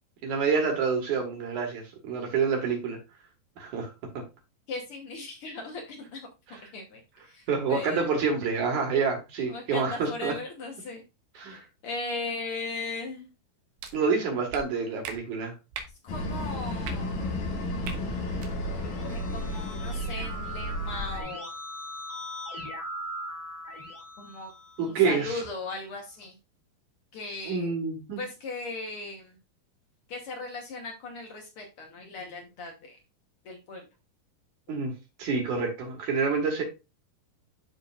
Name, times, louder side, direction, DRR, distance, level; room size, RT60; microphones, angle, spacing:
voice 1, 0.2-3.0 3.6-3.9 7.5-10.3 11.4-11.6 13.9-15.5 24.8-25.4 27.5-28.2 34.7-34.9 35.2-36.6, right 5 dB, 60° right, 2 dB, 2.8 m, -27 dB
voice 2, 4.7-6.3 6.7-8.1 9.5-11.0 11.3-13.3 16.0-17.1 19.0-21.5 24.2-24.5 24.8-26.3 27.1-27.7 28.2-29.4 30.1-33.0 33.4-33.8, left 3 dB, 90° left, 1 dB, 1.2 m, -38 dB
sound 1, 13.8-13.9 14.5-14.6 15.0-15.2 15.7-15.9 16.8-16.9 17.8-18.0 18.3-18.5, right 6 dB, 90° right, 2.9 m, -37 dB
sound 2, 16.1-21.2, left 1 dB, 60° left, 2.5 m, -32 dB
Keyboard (musical), 18.6-25.2, equal, 30° right, 1.0 m, -40 dB
12.5 x 4.2 x 2.4 m, 0.26 s
omnidirectional pair, 4.3 m